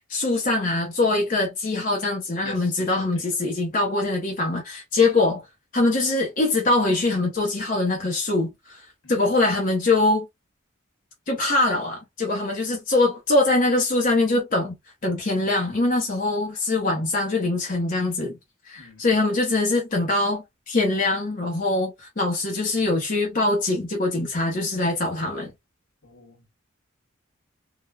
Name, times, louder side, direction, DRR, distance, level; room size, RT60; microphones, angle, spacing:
voice 1, 0.1-5.4 5.7-8.8 9.1-10.3 11.3-14.8 15.0-18.3 18.7-25.5, left 2 dB, 40° left, 0.7 m, -23 dB
voice 2, 2.4-3.2 9.0-9.2 18.8-19.0 26.0-26.5, left 3 dB, 85° left, 1.6 m, -44 dB
3.2 x 2.2 x 2.3 m
head